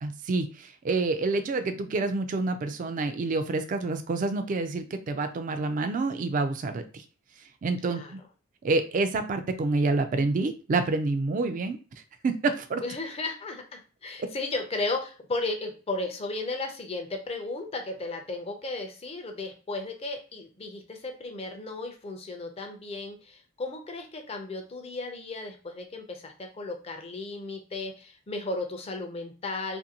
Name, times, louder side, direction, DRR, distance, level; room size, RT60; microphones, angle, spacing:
voice 1, 0.0-7.0 7.6-8.2 8.6-11.8 12.2-12.8, right 3 dB, 40° right, 8 dB, 0.3 m, -28 dB
voice 2, 12.8-29.8, left 2 dB, 30° left, 4 dB, 0.5 m, -35 dB
2.6 x 2.5 x 2.8 m, 0.36 s
head